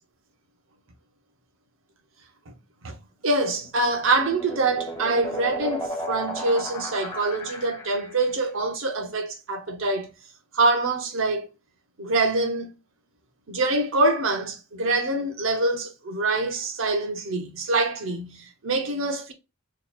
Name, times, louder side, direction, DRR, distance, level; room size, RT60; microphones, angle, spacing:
voice 1, 3.2-10.1 10.5-11.5 12.0-12.7 13.5-19.3, right 2 dB, 70° right, 0.7 m, -25 dB
sound 1, 3.6-8.3, equal, 20° left, 0.7 m, -34 dB
2.9 x 2.3 x 4.1 m
head